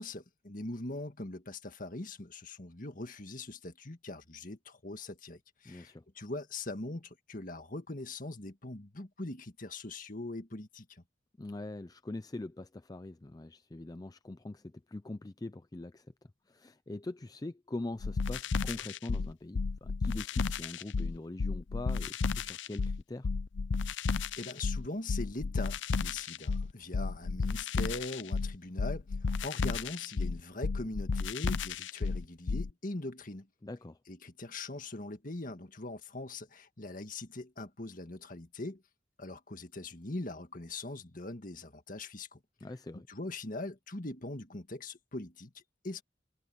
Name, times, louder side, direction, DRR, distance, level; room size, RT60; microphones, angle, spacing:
voice 1, 0.0-11.0 24.4-33.5 34.1-38.8 39.2-42.4 43.1-46.0, left 2 dB, 45° left, 1.9 m, -41 dB
voice 2, 5.6-6.0 11.4-16.1 16.5-23.3 33.6-34.0 42.6-43.1, left 2 dB, 20° left, 0.4 m, -43 dB
sound 1, 18.0-32.7, left 4 dB, 80° left, 0.5 m, -33 dB
head